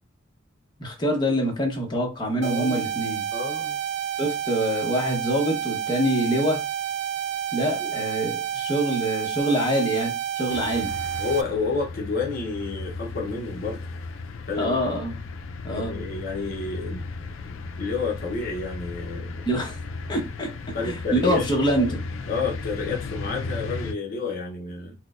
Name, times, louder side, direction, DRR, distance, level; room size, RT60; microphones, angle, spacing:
voice 1, 0.8-3.2 4.2-6.6 7.5-10.9 14.6-15.1 15.6-15.9 19.4-19.8 20.1-20.5 20.8-22.0, equal, 20° left, 0.8 m, -25 dB
voice 2, 2.4-2.9 3.3-3.8 7.8-7.9 11.2-13.8 14.5-14.8 15.7-17.0 17.4-19.4 20.7-21.5 21.8-21.9 22.3-24.9, left 4 dB, 50° left, 0.7 m, -30 dB
sound 1, 2.4-11.4, right 9 dB, 60° right, 0.3 m, -30 dB
sound 2, 10.5-23.9, left 3 dB, 80° left, 0.4 m, -35 dB
4.5 x 2.1 x 2.3 m
head